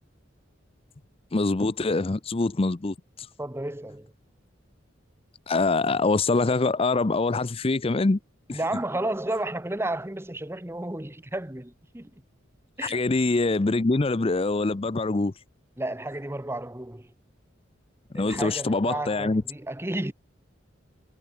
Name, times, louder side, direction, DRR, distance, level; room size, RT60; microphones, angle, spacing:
voice 1, 1.3-3.3 5.5-8.2 8.5-8.6 12.8-15.3 18.1-19.4, left 3 dB, 30° left, 0.5 m, -24 dB
voice 2, 3.4-4.1 8.5-12.1 12.8-13.0 15.8-17.1 18.1-20.1, right 1 dB, 15° right, 1.2 m, -32 dB
head